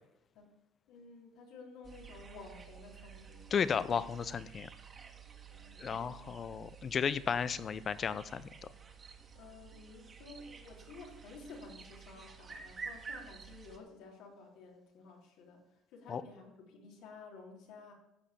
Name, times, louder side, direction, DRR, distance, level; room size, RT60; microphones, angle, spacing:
voice 1, 0.9-3.9 5.5-6.2 9.3-17.9, left 3 dB, 75° left, 0 dB, 3.6 m, -53 dB
sound 1, 1.8-13.8, right 6 dB, 30° right, 2.0 m, -51 dB
voice 2, 3.5-4.7 5.8-8.5 16.1-16.2, left 7 dB, 35° left, 16 dB, 0.6 m, -34 dB
14.5 x 5.6 x 8.4 m, 0.93 s
cardioid pair, 125°, 0 cm